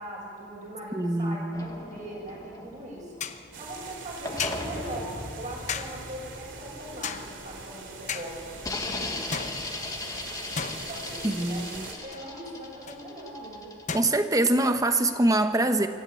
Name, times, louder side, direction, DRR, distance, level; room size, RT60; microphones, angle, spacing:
voice 1, 0.0-3.1 3.6-8.5 8.9-9.1 10.9-11.6 12.0-13.7, right 1 dB, 40° right, -3 dB, 7.2 m, -40 dB
voice 2, 0.9-1.7 11.2-11.9 13.9-15.9, right 1 dB, 20° right, 8 dB, 1.0 m, -24 dB
sound 1, 1.5-3.8 4.3-7.9 8.6-14.4, left 2 dB, 20° left, 1.7 m, -38 dB
sound 2, 2.0-2.1 3.2-3.5 4.4-4.8 5.7-6.2 7.0-7.5 8.1-8.5 9.3-10.1 10.6-11.4 12.1-12.3 12.9-13.1 13.9-14.0, left 6 dB, 40° left, 0.9 m, -35 dB
sound 3, 3.5-11.9, right 4 dB, 70° right, 2.8 m, -43 dB
25.5 x 13.5 x 8.4 m, 2.3 s
head